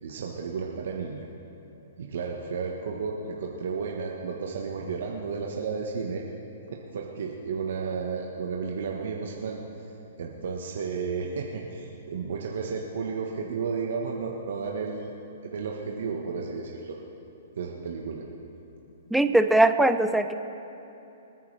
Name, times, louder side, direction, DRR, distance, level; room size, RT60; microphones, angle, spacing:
voice 1, 0.0-1.3 2.0-6.2 6.7-9.9 10.2-15.1 15.4-17.0 17.6-18.2, right 5 dB, 70° right, 0 dB, 1.2 m, -33 dB
voice 2, 19.1-20.3, right 1 dB, ahead, 9 dB, 0.5 m, -20 dB
26.0 x 9.5 x 3.4 m, 3.0 s
hypercardioid pair, 145°, 0 cm